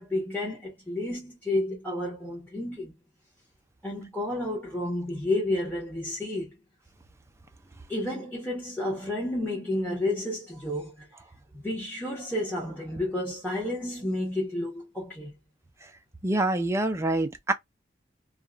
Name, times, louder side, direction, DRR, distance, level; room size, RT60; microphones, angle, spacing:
voice 1, 0.0-2.9 3.8-6.6 7.9-11.1 11.5-15.3, left 1 dB, 10° left, 1.3 m, -31 dB
voice 2, 16.2-17.5, right 2 dB, 15° right, 0.4 m, -25 dB
2.8 x 2.4 x 2.3 m
head